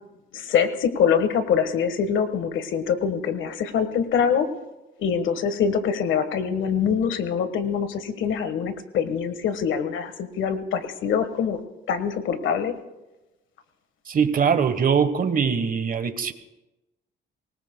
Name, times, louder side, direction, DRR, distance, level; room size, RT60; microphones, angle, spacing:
voice 1, 0.3-4.5 5.0-11.6 11.9-12.7, left 7 dB, 75° left, 10 dB, 1.4 m, -24 dB
voice 2, 14.1-16.3, right 6 dB, 45° right, 11 dB, 1.2 m, -22 dB
23.5 x 19.5 x 2.2 m, 1.0 s
cardioid pair, 90°, 20 cm